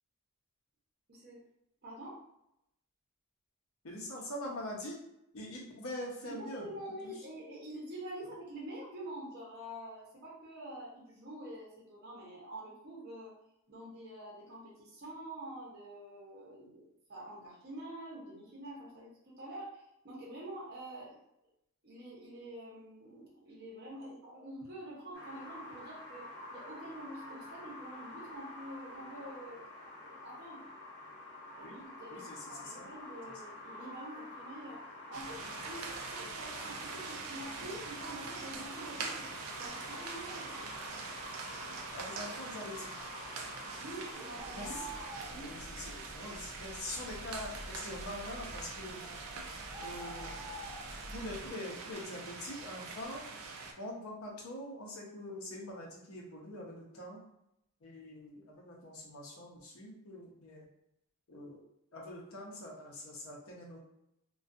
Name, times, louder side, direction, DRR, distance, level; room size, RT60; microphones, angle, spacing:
voice 1, 1.1-1.4 1.8-2.2 6.2-13.3 13.7-21.2 21.8-29.6 30.0-30.7 31.5-34.8 35.1-39.3 39.6-40.7 43.8-44.8 45.2-45.5, right 1 dB, 45° right, -5 dB, 0.8 m, -47 dB
voice 2, 3.8-5.0 5.3-6.7 7.0-7.1 31.6-31.8 32.1-32.9 41.9-42.9 44.5-44.9 45.4-49.1 49.8-50.3 51.1-53.3 53.8-57.2 57.8-60.7 61.3-61.6 61.9-63.8, left 1 dB, 70° left, -2 dB, 0.7 m, -44 dB
sound 1, 25.1-45.1, left 2 dB, 50° left, 1.2 m, -48 dB
sound 2, 35.1-53.7, right 4 dB, 70° right, 0.4 m, -44 dB
Bird, 44.4-51.5, right 1 dB, 15° left, 0.5 m, -48 dB
2.4 x 2.2 x 2.5 m, 0.81 s
head